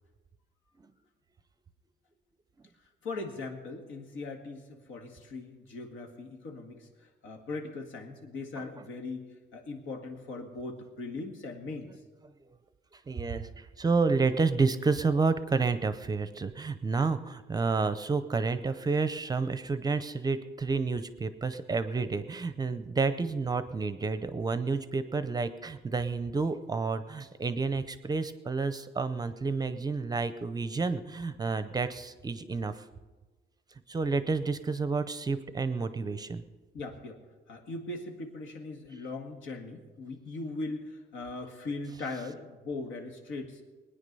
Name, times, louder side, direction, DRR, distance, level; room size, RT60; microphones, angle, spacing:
voice 1, 3.0-11.9 36.7-37.2 37.5-43.6, left 3 dB, 90° left, 3 dB, 2.1 m, -39 dB
voice 2, 12.9-32.9 33.9-36.4, right 4 dB, 20° right, 12 dB, 0.5 m, -30 dB
21.0 x 9.8 x 5.4 m, 1.3 s
cardioid pair, 165°, 20 cm